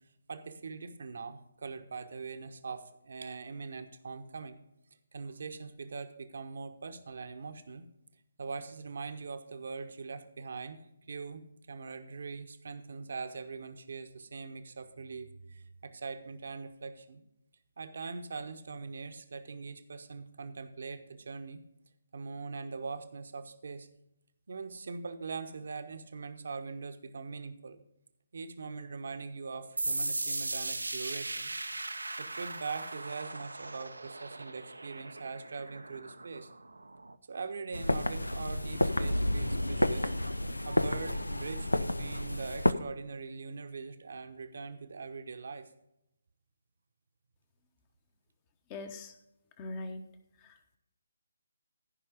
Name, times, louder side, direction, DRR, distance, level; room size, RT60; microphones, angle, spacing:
voice 1, 0.3-4.6 5.1-7.8 8.4-17.2 17.8-21.6 22.1-23.9 24.5-27.8 28.3-31.5 32.2-36.5 37.3-40.1 40.6-45.7, right 4 dB, 55° right, 8 dB, 1.0 m, -42 dB
sound 1, 29.8-37.1, right 2 dB, 75° right, 0.8 m, -38 dB
sound 2, 37.7-42.7, left 1 dB, 85° left, 0.6 m, -30 dB
voice 2, 48.7-49.1 49.6-50.0 50.4-50.8, left 2 dB, 25° left, 8 dB, 1.1 m, -42 dB
15.0 x 5.4 x 5.0 m, 0.83 s
figure-of-eight pair, 145°, 0 cm